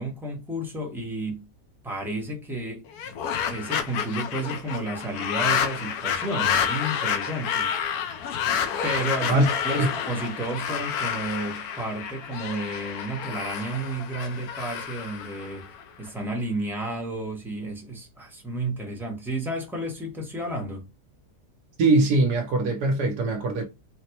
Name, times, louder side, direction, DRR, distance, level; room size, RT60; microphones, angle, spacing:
voice 1, 0.0-1.4 1.8-3.2 3.5-7.7 8.8-20.9, right 1 dB, ahead, 0.5 m, -32 dB
sound 1, 2.9-16.1, left 8 dB, 70° left, 1.1 m, -29 dB
voice 2, 21.8-23.6, right 2 dB, 80° right, 1.2 m, -21 dB
4.0 x 2.1 x 2.8 m
omnidirectional pair, 1.7 m